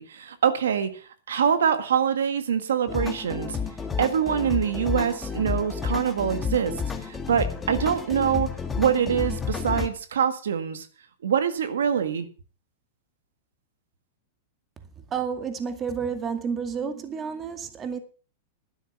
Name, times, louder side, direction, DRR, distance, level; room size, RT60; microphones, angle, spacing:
voice 1, 0.0-3.6 4.0-10.9 11.2-12.3, right 8 dB, 90° right, 1.8 m, -25 dB
sound 1, 2.9-9.9, left 6 dB, 15° left, 1.9 m, -31 dB
voice 2, 15.1-18.0, right 6 dB, 25° right, 2.2 m, -30 dB
12.0 x 9.8 x 5.9 m
hypercardioid pair, 130°, 0 cm